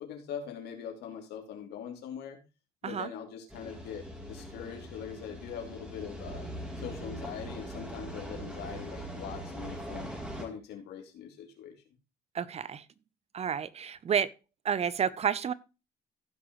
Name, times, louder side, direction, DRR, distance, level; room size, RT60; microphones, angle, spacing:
voice 1, 0.0-2.4 2.8-6.5 6.8-10.1 10.4-11.7, left 8 dB, 80° left, 3.0 m, -42 dB
sound 1, 3.5-10.5, right 1 dB, 5° right, 3.2 m, -41 dB
voice 2, 12.3-12.8 13.3-14.3 14.6-15.5, right 7 dB, 40° right, 0.7 m, -30 dB
15.5 x 6.1 x 3.1 m
cardioid pair, 110°, 17 cm